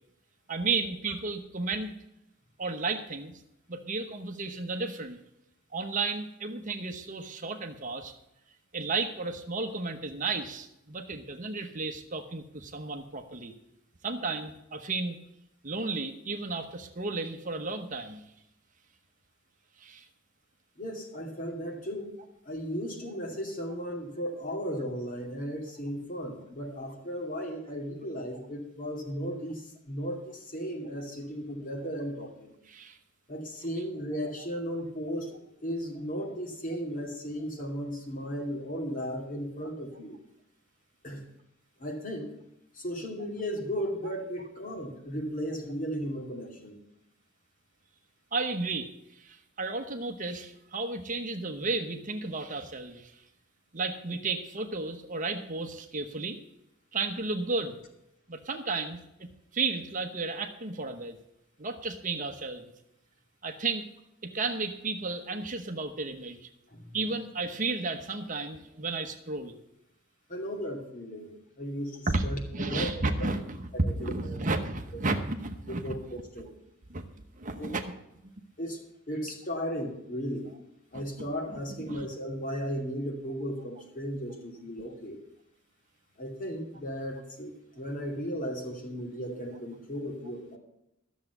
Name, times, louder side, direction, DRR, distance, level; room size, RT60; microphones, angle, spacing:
voice 1, 0.5-1.9 2.6-3.3 3.7-5.2 5.7-8.1 8.7-13.5 14.0-15.2 15.6-18.2 19.8-20.1 32.7-33.0 44.0-44.1 48.3-53.2 53.7-56.4 56.9-57.8 58.3-61.2 61.6-62.7 63.4-63.9 64.2-66.5 66.9-69.6 72.1-72.3 72.5-76.0 76.9-77.0 77.4-77.9 80.9-82.1, right 3 dB, 40° right, 6 dB, 1.0 m, -33 dB
voice 2, 20.8-22.1 22.4-32.5 33.3-40.2 41.0-41.2 41.8-42.3 42.7-46.8 66.7-67.0 70.3-71.3 71.6-72.9 73.2-73.3 73.8-74.4 75.8-76.5 77.6-77.7 78.6-78.8 79.1-80.5 80.9-85.2 86.2-90.6, equal, 40° left, 2 dB, 2.5 m, -35 dB
13.0 x 7.2 x 7.9 m, 0.84 s
head